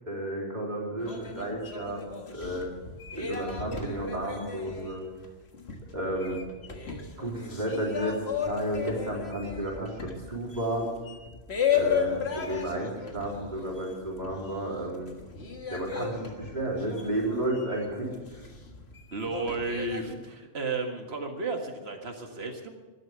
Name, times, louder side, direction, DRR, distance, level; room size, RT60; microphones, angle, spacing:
voice 1, 0.0-2.0 2.3-2.7 3.1-5.0 5.9-6.4 7.2-10.9 11.7-15.1 15.7-18.5, right 1 dB, 45° right, -4 dB, 3.9 m, -32 dB
sound 1, 1.0-14.7 15.0-20.1, left 7 dB, 85° left, 1.9 m, -35 dB
voice 2, 6.0-6.4 19.1-22.7, right 3 dB, 80° right, 4 dB, 2.0 m, -33 dB
12.0 x 12.0 x 8.0 m, 1.3 s
omnidirectional pair, 1.1 m